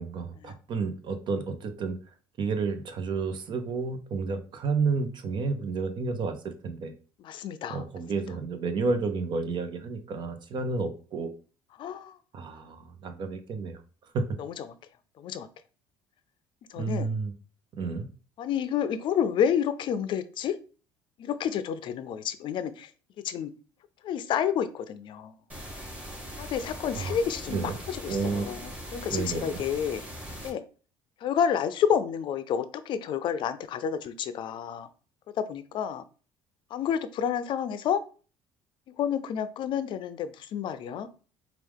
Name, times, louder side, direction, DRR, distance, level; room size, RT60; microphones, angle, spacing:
voice 1, 0.0-2.0 2.4-6.9 7.7-11.3 12.3-13.8 14.1-14.4 16.8-17.3 17.7-18.1 27.0-27.2 27.5-27.7 28.1-28.7 29.1-29.6, right 4 dB, 55° right, 9 dB, 0.8 m, -31 dB
voice 2, 7.2-7.8 11.8-12.2 14.4-14.7 15.2-15.5 16.7-17.1 18.4-20.6 21.2-22.9 23.2-23.5 24.0-25.3 26.4-30.0 30.4-30.6 31.2-34.9 35.3-36.0 36.7-38.0 38.9-41.1, left 8 dB, 55° left, 12 dB, 0.5 m, -29 dB
sound 1, 25.5-30.5, equal, 15° right, 1.9 m, -41 dB
4.6 x 2.4 x 3.6 m, 0.37 s
supercardioid pair, 90°, 10 cm